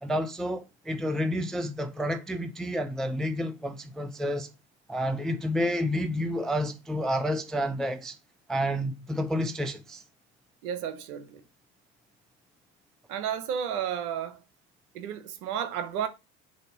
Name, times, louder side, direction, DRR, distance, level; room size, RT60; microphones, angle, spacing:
voice 1, 0.0-4.5 4.9-8.2 8.5-10.0, equal, ahead, 0.4 m, -30 dB
voice 2, 10.6-11.4 13.1-14.4 14.9-16.1, right 8 dB, 65° right, 1.1 m, -32 dB
6.3 x 2.9 x 5.7 m
figure-of-eight pair, 65°, 47 cm